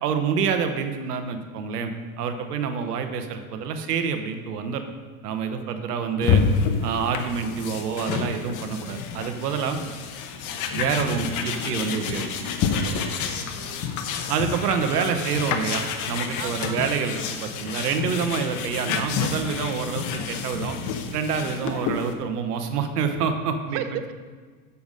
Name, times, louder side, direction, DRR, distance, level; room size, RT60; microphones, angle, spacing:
voice 1, 0.0-4.8 5.2-6.4 6.8-9.8 10.7-13.1 14.3-20.8 21.1-23.8, right 6 dB, 85° right, 7 dB, 1.1 m, -27 dB
sound 1, 6.2-22.1, left 6 dB, 40° left, 0.9 m, -28 dB
voice 2, 12.9-13.9 16.4-16.8 21.4-21.7 23.7-24.1, right 10 dB, 35° right, 10 dB, 0.4 m, -36 dB
7.0 x 6.8 x 5.4 m, 1.5 s
supercardioid pair, 120°, 46 cm